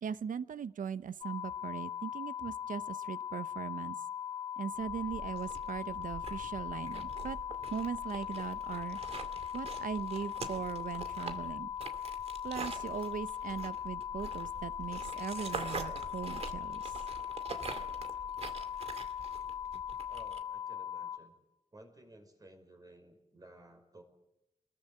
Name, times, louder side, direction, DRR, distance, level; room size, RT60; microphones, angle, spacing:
voice 1, 0.0-4.0 4.6-7.4 7.7-9.0 9.5-11.8 12.4-16.9, right 7 dB, 80° right, 14 dB, 0.9 m, -39 dB
sound 1, 1.2-21.2, left 9 dB, 50° left, 1.5 m, -40 dB
sound 2, 4.8-20.4, right 4 dB, 50° right, 2.3 m, -45 dB
voice 2, 20.1-21.3 21.7-24.0, right 1 dB, 30° right, 4 dB, 5.6 m, -56 dB
28.0 x 21.0 x 7.9 m, 0.91 s
wide cardioid pair, 155°, 13 cm